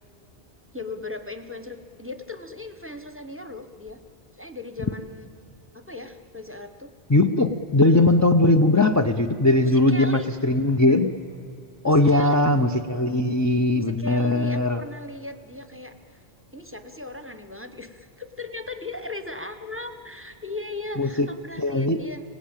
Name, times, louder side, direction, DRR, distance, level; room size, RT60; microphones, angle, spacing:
voice 1, 0.7-4.0 4.4-5.3 5.7-6.9 9.6-10.3 11.8-12.4 13.7-16.2 16.5-22.2, left 2 dB, 15° right, 8 dB, 0.9 m, -38 dB
voice 2, 7.1-11.1 11.8-14.8 21.0-21.3 21.6-22.0, left 2 dB, 20° left, 3 dB, 0.6 m, -20 dB
25.5 x 18.0 x 8.9 m, 2.7 s
omnidirectional pair, 1.1 m